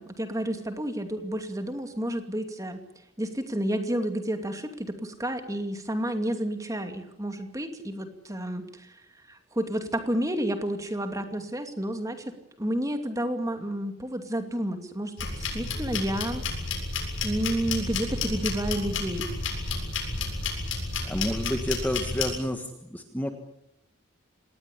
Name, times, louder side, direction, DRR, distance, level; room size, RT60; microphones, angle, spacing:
voice 1, 0.0-2.8 3.2-9.0 9.3-16.4 17.2-19.3, right 1 dB, 15° right, 6 dB, 2.6 m, -30 dB
sound 1, 15.2-22.3, left 3 dB, 65° left, 7.5 m, -31 dB
voice 2, 21.0-22.6 22.9-23.3, equal, 10° left, 5 dB, 1.6 m, -29 dB
26.5 x 19.5 x 8.5 m, 0.81 s
head